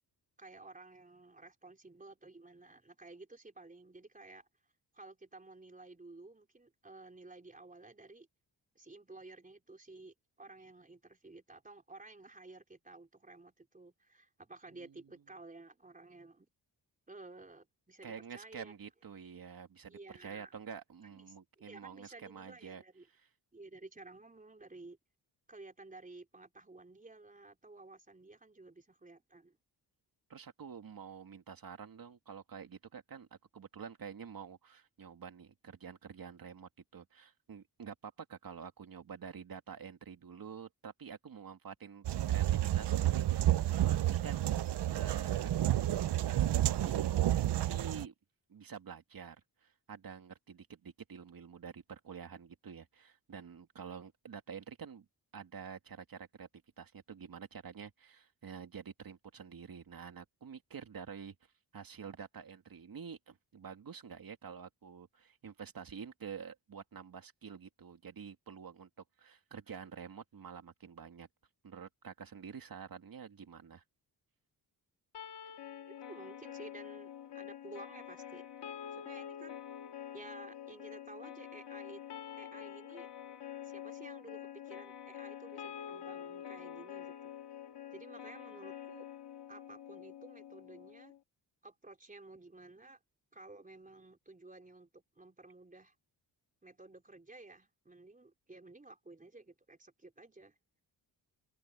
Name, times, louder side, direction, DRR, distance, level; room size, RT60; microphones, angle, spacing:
voice 1, 0.4-4.5 4.9-8.3 8.7-16.5 17.1-18.7 19.9-20.5 21.1-23.1 23.5-25.0 25.5-29.6 75.9-78.5 78.9-79.6 80.1-82.0 82.4-83.1 83.6-87.3 87.9-89.1 89.5-91.1 91.6-93.0 93.3-95.9 96.6-100.5, right 2 dB, 20° right, 4.3 m, -53 dB
voice 2, 18.0-22.8 30.3-33.3 33.5-44.5 44.9-45.9 46.2-48.1 48.5-55.1 55.3-56.5 56.8-61.3 61.7-68.9 69.2-71.3 71.6-73.8, right 6 dB, 55° right, 2.6 m, -48 dB
sound 1, 42.0-48.0, right 13 dB, 70° right, 0.8 m, -30 dB
sound 2, 75.1-91.2, left 10 dB, 70° left, 2.0 m, -47 dB
open air
wide cardioid pair, 120°, 42 cm